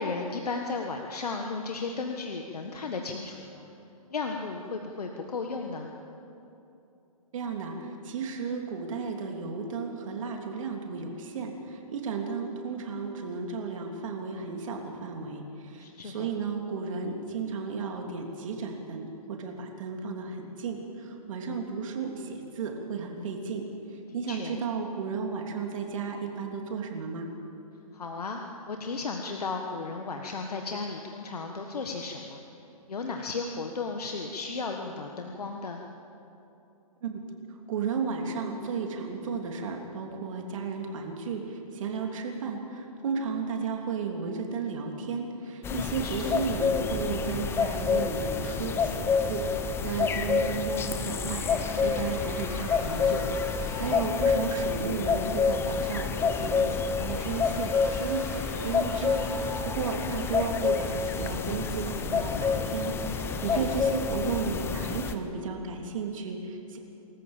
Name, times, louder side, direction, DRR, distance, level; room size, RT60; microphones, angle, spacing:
voice 1, 0.0-3.7 4.1-5.9 15.8-16.3 24.3-24.6 27.9-28.4 28.7-32.4 32.9-35.8 45.7-46.5 53.6-54.0 59.8-59.9 63.3-63.6, left 4 dB, 90° left, 2 dB, 1.6 m, -35 dB
voice 2, 7.3-23.7 24.1-27.3 37.0-37.2 37.7-51.5 51.8-66.8, right 5 dB, 60° right, 2 dB, 3.1 m, -34 dB
sound 1, 45.6-65.1, left 5 dB, 10° left, 0.8 m, -28 dB
sound 2, 51.1-54.3 54.7-54.8 56.4-60.1 60.8-61.0, equal, 5° right, 4.6 m, -45 dB
25.0 x 14.5 x 7.4 m, 2.9 s
hypercardioid pair, 140°, 19 cm